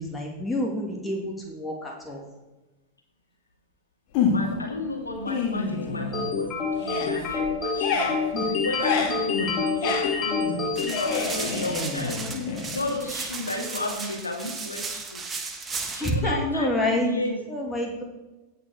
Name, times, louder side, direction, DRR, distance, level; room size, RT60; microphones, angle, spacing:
voice 1, 0.0-2.2 16.0-17.1 17.5-18.1, left 1 dB, 10° left, -1 dB, 2.7 m, -27 dB
sound 1, 4.1-4.7 5.1-6.4 6.7-13.2, left 4 dB, 45° left, 2.4 m, -29 dB
voice 2, 4.3-12.2 12.7-15.2 15.9-17.4, left 2 dB, 80° left, 1 dB, 2.5 m, -33 dB
sound 2, 6.1-11.9, left 4 dB, 25° left, 2.9 m, -27 dB
sound 3, 10.8-16.1, right 4 dB, 20° right, 1.4 m, -35 dB
17.0 x 5.8 x 5.1 m, 1.1 s
figure-of-eight pair, 90°, 0 cm